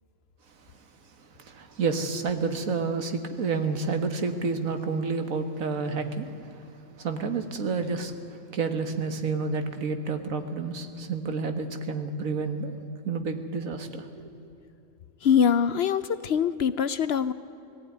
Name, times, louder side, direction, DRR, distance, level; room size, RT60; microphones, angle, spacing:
voice 1, 1.4-6.5 7.0-8.1 8.5-12.7 13.1-14.3, right 4 dB, 85° right, 8 dB, 1.8 m, -29 dB
voice 2, 15.2-17.3, left 7 dB, 60° left, 14 dB, 0.7 m, -23 dB
19.0 x 15.5 x 9.4 m, 2.9 s
omnidirectional pair, 1.4 m